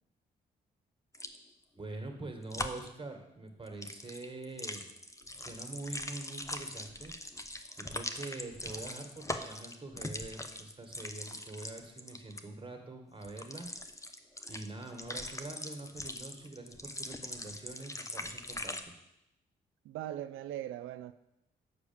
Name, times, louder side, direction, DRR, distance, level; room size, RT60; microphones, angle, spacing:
sound 1, 1.1-1.4 2.5-2.9 3.7-12.4 13.2-18.8, left 1 dB, 15° left, 0.9 m, -41 dB
voice 1, 1.8-4.9 5.4-7.1 7.8-13.7 14.5-18.9, right 2 dB, 25° right, 3 dB, 1.9 m, -45 dB
voice 2, 19.8-21.1, right 12 dB, 75° right, 12 dB, 0.5 m, -40 dB
6.9 x 4.9 x 7.1 m, 0.86 s
hypercardioid pair, 45°, 21 cm